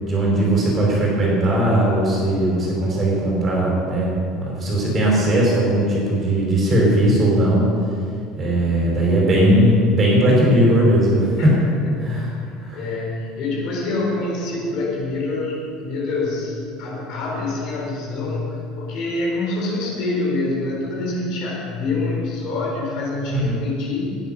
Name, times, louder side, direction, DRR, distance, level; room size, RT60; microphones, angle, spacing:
voice 1, 0.0-7.6 8.4-11.5 12.0-12.3 12.6-12.8 23.3-23.6, right 1 dB, 25° right, -3 dB, 4.7 m, -18 dB
voice 2, 11.8-12.2 12.7-24.2, left 2 dB, 45° left, -3 dB, 4.3 m, -26 dB
16.5 x 11.0 x 5.7 m, 2.4 s
cardioid pair, 180°, 0 cm